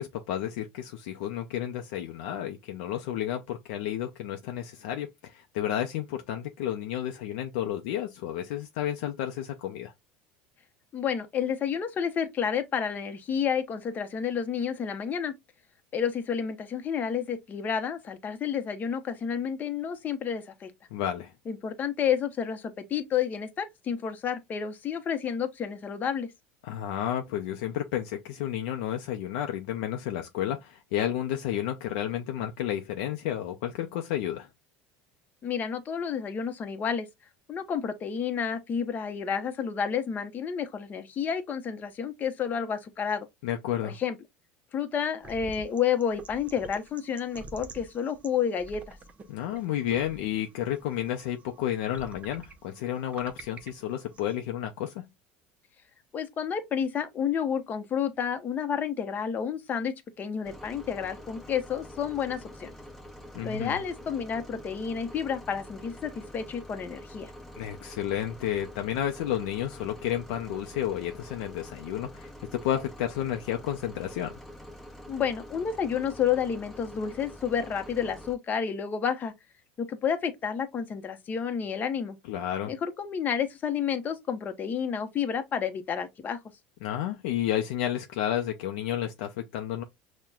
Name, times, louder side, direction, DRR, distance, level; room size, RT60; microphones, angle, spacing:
voice 1, 0.0-9.9 20.9-21.3 26.6-34.5 43.4-44.0 49.3-55.1 63.3-63.7 67.6-74.3 82.3-82.7 86.8-89.8, left 11 dB, 80° left, 0.4 m, -31 dB
voice 2, 10.9-15.3 15.9-20.7 21.5-26.3 35.4-37.1 37.5-43.3 43.8-44.2 44.7-49.0 56.1-62.7 63.4-67.3 75.1-79.3 79.8-82.2 82.7-86.4, left 7 dB, 35° left, 0.7 m, -30 dB
sound 1, 45.2-54.4, right 3 dB, 25° right, 0.6 m, -48 dB
sound 2, 60.4-78.4, equal, 5° left, 0.9 m, -46 dB
5.7 x 2.1 x 2.3 m
supercardioid pair, 115°, 5 cm